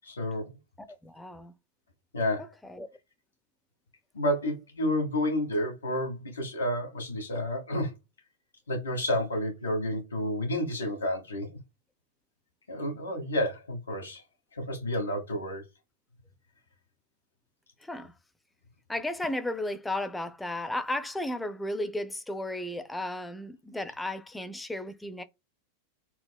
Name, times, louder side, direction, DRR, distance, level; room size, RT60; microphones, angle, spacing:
voice 1, 0.1-0.5 2.1-2.4 4.1-7.9 8.7-11.6 12.7-14.2 14.6-15.6, left 1 dB, 85° left, 1.1 m, -30 dB
voice 2, 0.9-1.5 2.4-2.9 17.8-18.1 18.9-25.2, left 1 dB, 5° left, 0.5 m, -34 dB
4.5 x 2.0 x 2.2 m
hypercardioid pair, 90°, 0 cm